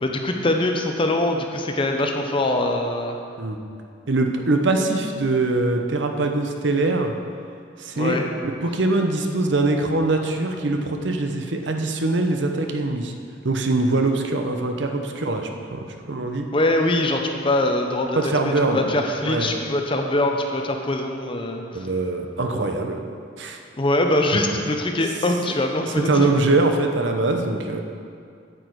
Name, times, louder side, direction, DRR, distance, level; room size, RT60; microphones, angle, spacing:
voice 1, 0.0-3.2 7.9-8.3 16.5-18.3 18.7-21.8 23.8-26.3, left 1 dB, 25° left, 3 dB, 0.7 m, -23 dB
voice 2, 4.1-7.1 7.8-13.1 13.4-16.5 18.1-18.8 19.3-19.5 21.7-23.0 23.4-23.6 26.1-27.8, right 2 dB, 70° right, 4 dB, 0.8 m, -23 dB
9.1 x 8.4 x 4.7 m, 2.3 s
head